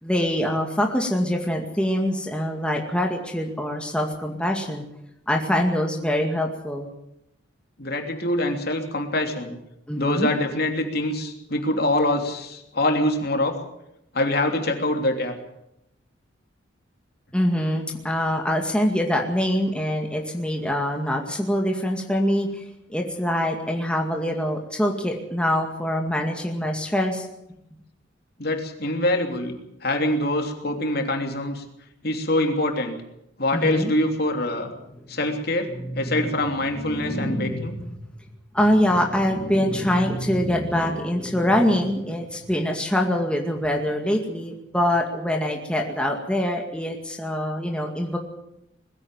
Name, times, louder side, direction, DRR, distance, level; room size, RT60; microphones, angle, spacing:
voice 1, 0.0-4.8 5.3-6.9 9.9-10.3 17.3-22.6 22.9-27.3 33.5-33.9 35.0-35.1 35.7-36.3 36.7-37.9 38.5-48.2, equal, 5° left, 1 dB, 2.2 m, -24 dB
voice 2, 7.8-9.6 10.0-13.6 14.1-15.3 28.4-29.6 29.8-31.6 32.0-33.0 33.4-34.7 35.1-35.7 36.0-37.8, left 1 dB, 50° left, 4 dB, 3.2 m, -24 dB
21.0 x 15.5 x 9.0 m, 0.82 s
head